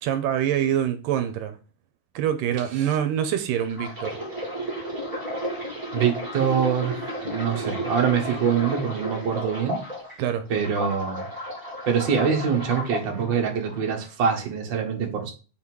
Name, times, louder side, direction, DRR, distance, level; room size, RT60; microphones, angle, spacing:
voice 1, 0.0-1.6 2.2-4.2 10.2-10.5, right 10 dB, 80° right, 2.3 m, -25 dB
sound 1, 3.6-10.1 10.5-13.0 13.7-13.9, equal, 5° right, 2.3 m, -32 dB
voice 2, 5.9-9.8 10.5-11.3 11.9-15.3, right 7 dB, 45° right, 1.7 m, -24 dB
5.8 x 4.0 x 6.1 m
omnidirectional pair, 4.0 m